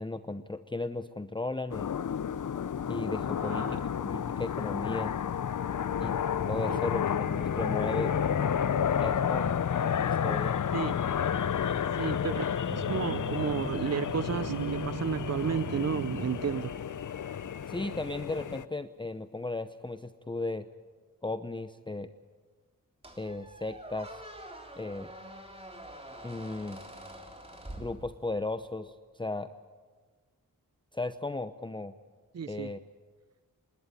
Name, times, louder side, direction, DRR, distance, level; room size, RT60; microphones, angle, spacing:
voice 1, 0.0-1.9 2.9-5.1 6.0-6.2 6.4-8.2 9.0-9.5 10.2-10.6 17.7-20.7 21.2-22.1 23.2-24.2 24.8-25.1 26.2-26.8 27.8-29.5 30.9-31.9 32.5-32.8, left 2 dB, 15° left, 10 dB, 0.7 m, -35 dB
sound 1, 1.7-18.7, left 8 dB, 65° left, 0.7 m, -31 dB
voice 2, 3.4-3.8 6.7-6.8 10.7-11.0 11.9-12.4 12.9-16.7 32.3-32.7, right 7 dB, 50° right, 14 dB, 0.6 m, -32 dB
sound 2, 12.7-16.9, right 7 dB, 80° right, 0.9 m, -39 dB
Squeak, 23.0-28.5, right 1 dB, 15° right, 3.2 m, -46 dB
27.0 x 12.5 x 9.9 m, 1.5 s
wide cardioid pair, 75°, 33 cm